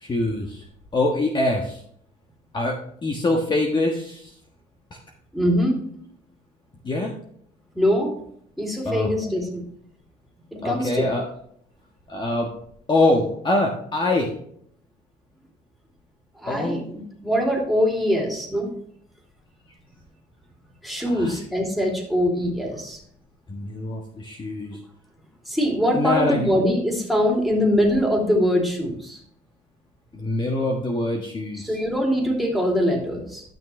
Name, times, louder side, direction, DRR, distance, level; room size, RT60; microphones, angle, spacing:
voice 1, 0.0-0.6 0.9-1.8 2.5-2.8 3.0-4.3 6.8-7.1 8.8-9.1 10.6-11.2 12.1-12.5 12.9-14.3 16.5-16.8 21.1-21.4 23.5-24.8 25.9-26.5 30.1-31.8, left 2 dB, 25° left, 1 dB, 1.4 m, -24 dB
voice 2, 5.3-5.8 7.7-8.1 8.6-9.6 10.6-11.1 16.4-18.7 20.8-23.0 25.5-29.2 31.6-33.4, equal, ahead, -2 dB, 3.0 m, -23 dB
12.0 x 6.1 x 3.3 m, 0.65 s
cardioid pair, 110°, 17 cm